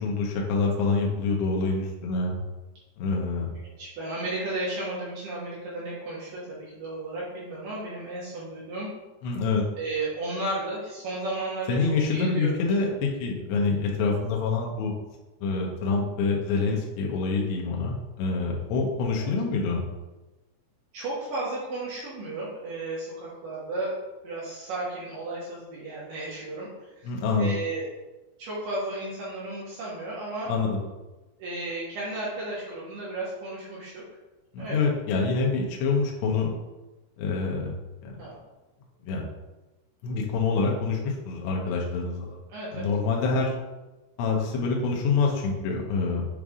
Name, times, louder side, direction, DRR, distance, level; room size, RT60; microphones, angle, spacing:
voice 1, 0.0-2.4 3.0-3.5 9.2-9.6 11.7-14.9 15.4-19.8 27.0-27.5 30.5-30.8 34.5-36.5 37.2-37.7 38.0-38.2 39.0-39.3 40.0-42.4 42.7-43.5 44.2-46.3, left 4 dB, 75° left, -1 dB, 2.9 m, -26 dB
voice 2, 3.8-8.9 9.8-11.8 12.1-12.6 12.8-12.9 19.2-19.3 20.9-23.9 24.2-27.1 27.4-27.8 28.4-30.5 31.4-34.0 34.6-34.9 38.2-38.4 42.5-42.9, right 2 dB, 75° right, -7 dB, 2.0 m, -34 dB
8.3 x 3.3 x 3.7 m, 1.1 s
omnidirectional pair, 5.8 m